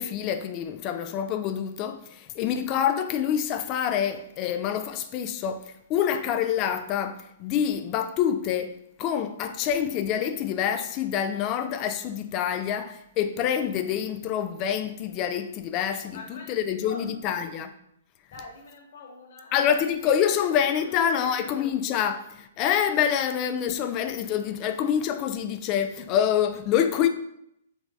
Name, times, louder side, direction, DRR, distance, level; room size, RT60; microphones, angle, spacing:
voice 1, 0.0-8.7 9.0-17.7 19.5-27.1, left 9 dB, 35° left, 0.3 m, -26 dB
voice 2, 16.1-17.4 18.3-19.5 20.3-21.6, left 3 dB, 60° left, 0.8 m, -45 dB
3.5 x 3.3 x 2.3 m
figure-of-eight pair, 115°, 0 cm